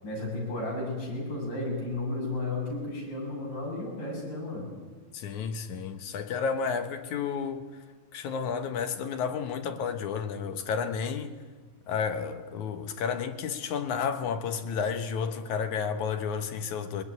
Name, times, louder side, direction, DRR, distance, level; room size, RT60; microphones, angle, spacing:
voice 1, 0.0-4.7, left 2 dB, 90° left, 9.0 m, -33 dB
voice 2, 5.1-7.6 8.1-11.4 11.9-17.0, left 6 dB, 70° left, 2.6 m, -31 dB
21.0 x 21.0 x 9.7 m
omnidirectional pair, 3.7 m